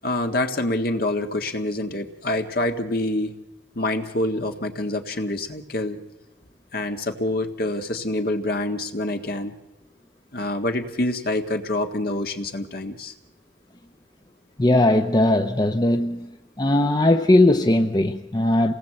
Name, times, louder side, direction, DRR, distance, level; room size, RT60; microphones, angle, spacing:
voice 1, 0.0-3.3 3.7-6.0 6.7-9.5 10.3-13.1, left 1 dB, 55° left, 1.7 m, -26 dB
voice 2, 14.6-16.3 16.6-18.7, left 1 dB, 20° left, 0.8 m, -19 dB
27.5 x 19.0 x 7.7 m
head